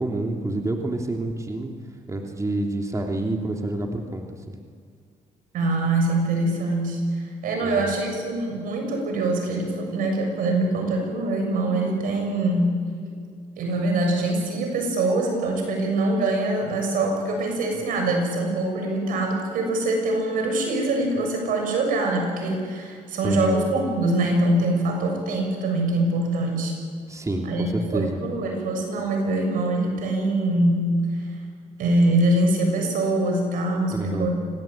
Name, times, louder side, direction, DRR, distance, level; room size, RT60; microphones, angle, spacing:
voice 1, 0.0-1.7 2.1-4.5 7.6-7.9 23.2-23.6 27.1-28.2 33.9-34.3, right 2 dB, 20° right, 2 dB, 3.0 m, -28 dB
voice 2, 5.5-12.7 13.6-26.7 27.4-27.7 27.9-30.9 31.2-31.3 31.8-34.3, right 2 dB, 85° right, 2 dB, 7.1 m, -24 dB
25.5 x 18.5 x 9.0 m, 2.1 s
cardioid pair, 80°, 14 cm